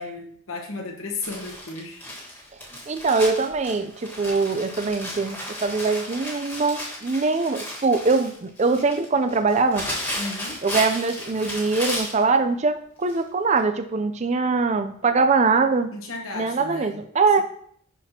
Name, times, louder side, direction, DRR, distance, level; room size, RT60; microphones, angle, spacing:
voice 1, 0.0-2.0 10.2-10.6 15.9-17.0, left 3 dB, 80° left, 1 dB, 1.1 m, -34 dB
Crumpling crinkling, 1.2-12.2 13.1-13.2 13.6-13.7, left 1 dB, 10° left, 1.4 m, -34 dB
voice 2, 2.9-9.9 10.6-15.9 16.3-17.4, right 4 dB, 35° right, 9 dB, 0.4 m, -22 dB
11.0 x 4.2 x 2.8 m, 0.64 s
head